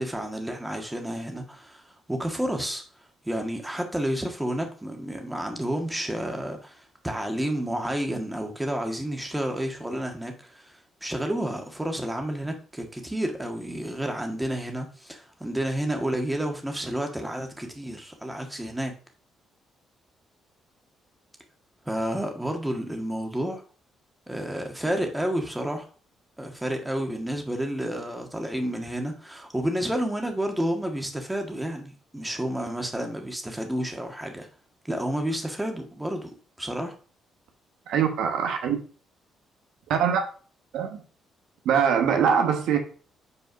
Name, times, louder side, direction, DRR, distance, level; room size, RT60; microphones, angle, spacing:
voice 1, 0.0-2.8 3.3-10.7 11.0-19.0 21.9-23.6 24.3-25.9 26.4-34.5 34.9-37.0, right 1 dB, 10° right, 1.6 m, -30 dB
voice 2, 37.9-38.8 39.9-40.2 40.7-41.0 41.6-42.8, right 7 dB, 85° right, 1.0 m, -23 dB
5.5 x 4.6 x 5.1 m
cardioid pair, 90°, 0 cm